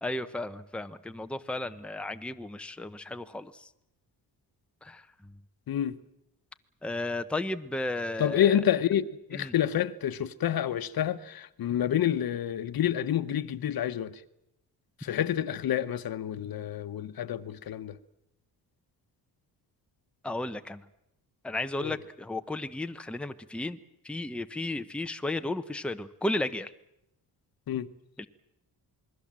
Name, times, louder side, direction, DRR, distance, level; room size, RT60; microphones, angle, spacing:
voice 1, 0.0-3.7 4.8-5.4 6.8-8.6 9.3-9.5 20.2-20.9 21.4-23.8 24.0-26.7 28.2-28.3, left 2 dB, 5° left, 0.8 m, -34 dB
voice 2, 5.7-6.0 8.2-14.1 15.0-18.0 21.8-21.9 27.7-27.9, left 10 dB, 65° left, 1.1 m, -28 dB
27.5 x 21.0 x 7.5 m
cardioid pair, 140°, 39 cm